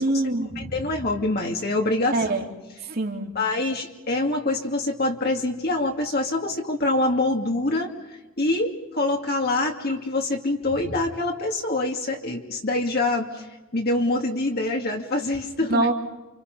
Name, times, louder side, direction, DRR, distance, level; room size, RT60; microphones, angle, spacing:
voice 1, 0.0-0.7 2.1-2.5 2.9-3.3 15.6-15.9, right 2 dB, 50° right, 2 dB, 3.2 m, -24 dB
voice 2, 0.6-2.2 3.3-7.9 8.4-13.5 13.7-15.9, left 2 dB, 50° left, 1 dB, 2.4 m, -25 dB
29.5 x 27.0 x 5.5 m, 1.1 s
head